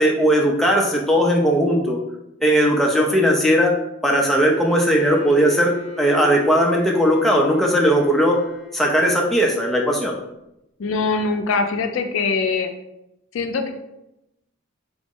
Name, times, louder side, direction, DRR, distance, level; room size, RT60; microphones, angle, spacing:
voice 1, 0.0-2.0 2.4-8.4 8.7-10.2, equal, ahead, -2 dB, 0.4 m, -18 dB
Bowed string instrument, 4.4-9.1, left 4 dB, 40° left, 0.8 m, -36 dB
voice 2, 10.8-12.7 13.3-13.7, left 4 dB, 70° left, 6 dB, 0.4 m, -22 dB
3.6 x 2.0 x 3.6 m, 0.86 s
head